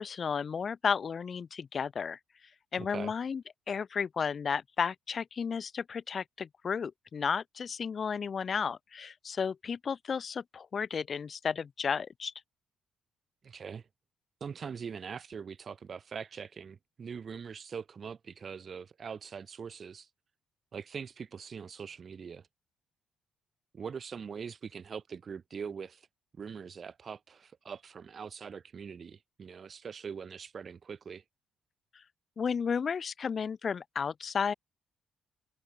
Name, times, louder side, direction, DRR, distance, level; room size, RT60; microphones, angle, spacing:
voice 1, 0.0-2.2 2.7-3.4 3.7-12.3 32.4-34.5, left 6 dB, 45° left, 0.8 m, -33 dB
voice 2, 2.8-3.1 13.4-13.9 14.4-20.1 20.7-22.5 23.7-26.1 26.4-31.2, right 6 dB, 45° right, 1.9 m, -42 dB
cardioid pair, 90°, 0 cm